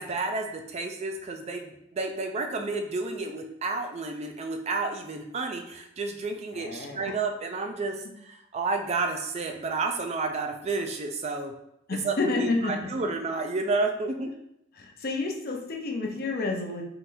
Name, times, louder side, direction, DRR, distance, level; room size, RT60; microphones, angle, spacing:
voice 1, 0.0-8.0 8.2-11.5 12.0-12.2 12.4-14.3, right 3 dB, 30° right, 4 dB, 0.4 m, -31 dB
voice 2, 6.5-7.1 11.9-12.9 14.7-16.8, left 3 dB, 50° left, 1 dB, 0.7 m, -30 dB
4.2 x 3.8 x 2.6 m, 0.79 s
head